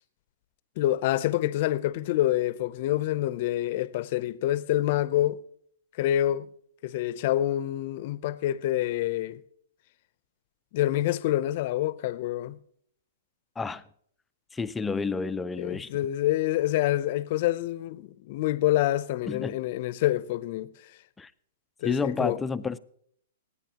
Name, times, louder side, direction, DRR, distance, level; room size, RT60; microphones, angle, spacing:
voice 1, 0.8-5.4 6.0-6.5 6.8-9.4 10.7-12.6 15.6-20.7 21.8-22.4, left 14 dB, 50° left, 0.6 m, -27 dB
voice 2, 14.5-15.9 19.3-19.6 21.2-21.3 21.8-22.8, left 4 dB, 10° left, 0.5 m, -30 dB
26.5 x 9.8 x 2.9 m
hypercardioid pair, 130°, 0 cm